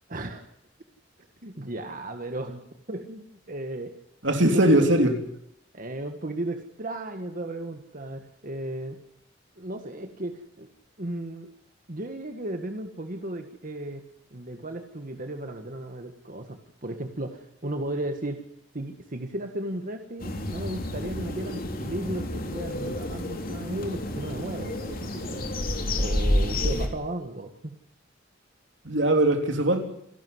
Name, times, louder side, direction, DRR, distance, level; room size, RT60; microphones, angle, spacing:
voice 1, 0.1-0.5 1.4-3.9 4.3-4.9 5.7-9.0 9.6-10.7 11.0-11.5 11.9-14.1 14.3-18.4 18.7-27.8, right 1 dB, 45° right, 5 dB, 1.7 m, -35 dB
voice 2, 4.2-5.1 28.8-29.8, right 1 dB, 80° right, 5 dB, 3.4 m, -20 dB
sound 1, 20.2-26.9, left 1 dB, 50° left, 3.3 m, -29 dB
28.0 x 12.0 x 9.6 m, 0.76 s
head